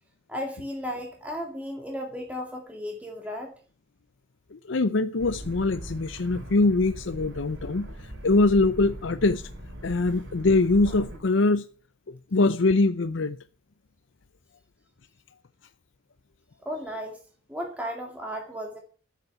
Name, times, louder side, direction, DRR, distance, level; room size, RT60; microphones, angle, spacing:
voice 1, 0.3-3.5 16.6-17.2 17.5-18.8, equal, 5° right, 2.1 m, -34 dB
voice 2, 4.5-9.5 9.8-11.6 12.1-13.4, left 3 dB, 70° left, 0.7 m, -23 dB
sound 1, 5.2-11.2, right 1 dB, 80° right, 4.5 m, -40 dB
13.5 x 8.3 x 7.0 m
head